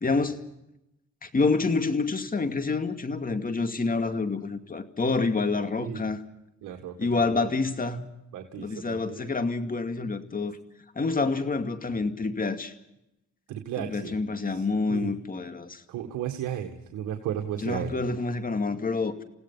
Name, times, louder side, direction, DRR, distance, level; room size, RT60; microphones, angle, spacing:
voice 1, 0.0-0.4 1.2-6.2 7.0-8.0 8.6-10.6 11.0-12.7 13.8-15.8 17.6-19.2, left 3 dB, 30° left, 2.4 m, -27 dB
voice 2, 6.6-6.9 7.3-7.5 8.3-9.2 13.5-14.1 14.5-14.6 14.9-15.1 15.9-17.9, right 10 dB, 85° right, 2.0 m, -34 dB
29.5 x 17.0 x 5.7 m
cardioid pair, 90°, 30 cm